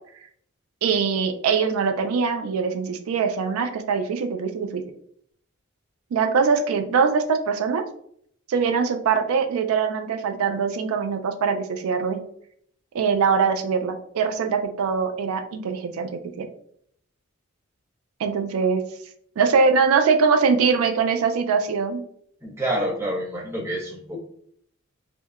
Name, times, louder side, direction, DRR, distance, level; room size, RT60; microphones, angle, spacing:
voice 1, 0.8-4.8 6.1-7.8 8.5-12.2 12.9-16.5 18.2-18.8 19.4-22.0, right 5 dB, 85° right, 7 dB, 0.3 m, -22 dB
voice 2, 22.4-24.2, right 1 dB, 10° right, -5 dB, 0.7 m, -28 dB
2.7 x 2.0 x 2.3 m, 0.67 s
head